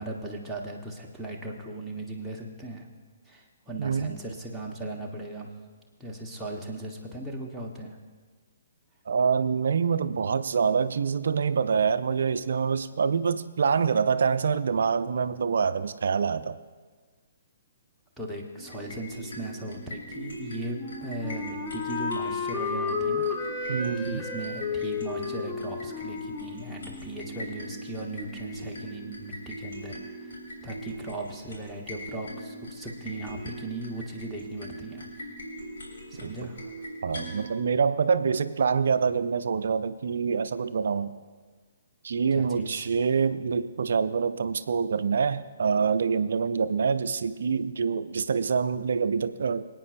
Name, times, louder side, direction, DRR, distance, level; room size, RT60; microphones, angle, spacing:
voice 1, 0.0-2.9 3.2-5.5 6.0-8.0 18.2-35.1 36.1-36.7 42.3-42.9, right 2 dB, ahead, -4 dB, 1.3 m, -38 dB
voice 2, 3.8-4.2 9.1-16.6 23.7-24.2 36.2-36.3 37.0-41.2 42.0-49.7, right 6 dB, 60° right, 13 dB, 0.5 m, -26 dB
sound 1, 18.5-37.5, right 1 dB, 65° left, 3.5 m, -41 dB
Wind instrument woodwind instrument, 20.8-27.6, left 5 dB, 15° left, 1.4 m, -33 dB
25.5 x 8.9 x 2.6 m, 1.5 s
figure-of-eight pair, 125°, 0 cm